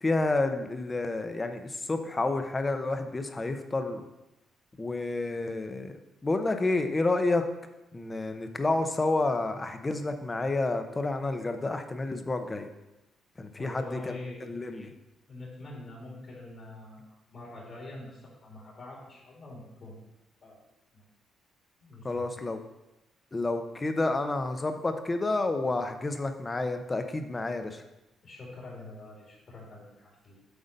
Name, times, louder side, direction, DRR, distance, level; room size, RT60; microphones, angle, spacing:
voice 1, 0.0-4.1 4.8-7.5 7.9-12.7 13.4-14.2 14.5-15.0 22.0-22.6 23.3-27.8, left 2 dB, 25° left, 7 dB, 0.7 m, -30 dB
voice 2, 13.6-14.5 14.8-14.9 15.3-20.0 20.4-20.6 20.9-21.0 21.8-22.4 28.2-30.4, left 2 dB, 55° left, -4 dB, 2.5 m, -45 dB
8.0 x 3.8 x 5.3 m, 0.97 s
cardioid pair, 90°, 0 cm